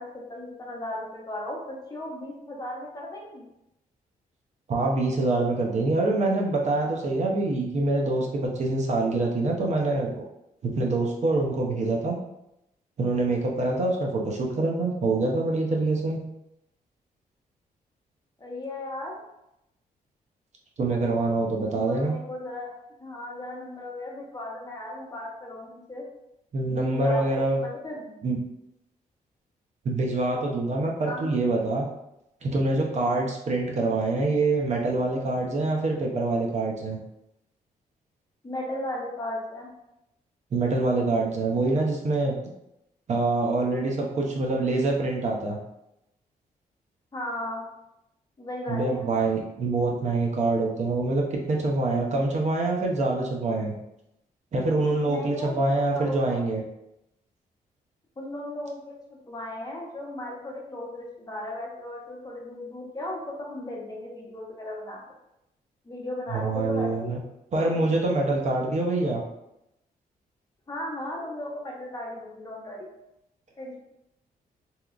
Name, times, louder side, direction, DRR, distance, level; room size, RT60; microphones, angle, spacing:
voice 1, 0.0-3.5 18.4-19.2 21.7-22.7 23.0-26.0 26.6-28.1 31.1-31.4 38.4-39.7 47.1-47.7 48.4-49.1 55.1-56.4 58.2-59.0 59.3-65.0 65.8-67.1 67.6-67.9 70.7-72.9 73.6-73.8, left 1 dB, 25° left, -2 dB, 0.8 m, -36 dB
voice 2, 4.7-10.3 10.6-12.2 13.0-16.2 20.8-22.2 26.5-27.6 28.2-28.4 29.8-31.9 32.4-37.0 40.5-42.3 43.1-45.6 48.7-53.7 54.5-56.6 66.3-67.2 67.5-69.2, right 2 dB, 50° right, 0 dB, 0.5 m, -25 dB
2.8 x 2.3 x 2.4 m, 0.85 s
cardioid pair, 85°, 15 cm